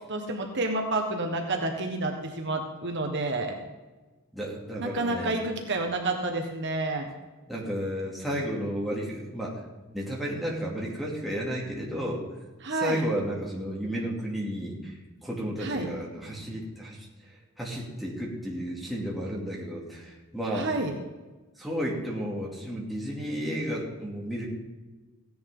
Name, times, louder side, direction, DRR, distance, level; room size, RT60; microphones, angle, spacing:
voice 1, 0.1-3.5 4.8-7.1 12.6-13.0 15.6-15.9 20.5-20.9, right 2 dB, 55° right, 3 dB, 1.4 m, -29 dB
voice 2, 4.3-5.4 7.5-9.6 9.9-12.2 12.7-14.9 15.2-17.1 17.6-20.7 21.6-24.5, equal, ahead, -5 dB, 2.8 m, -32 dB
16.0 x 10.0 x 3.9 m, 1.2 s
head